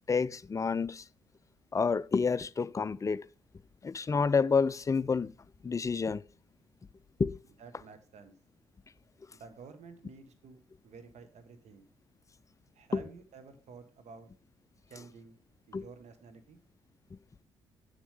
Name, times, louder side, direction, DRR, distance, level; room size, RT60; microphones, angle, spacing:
voice 1, 0.1-1.0 1.7-3.2 3.8-5.3 5.6-6.2 7.2-7.3 12.9-13.0 15.7-15.8, left 5 dB, 25° left, 0.4 m, -29 dB
voice 2, 7.6-8.3 9.3-11.9 12.7-14.3 14.9-15.4 15.7-16.6, right 5 dB, 55° right, 1.3 m, -51 dB
7.1 x 7.1 x 3.5 m
hypercardioid pair, 45°, 14 cm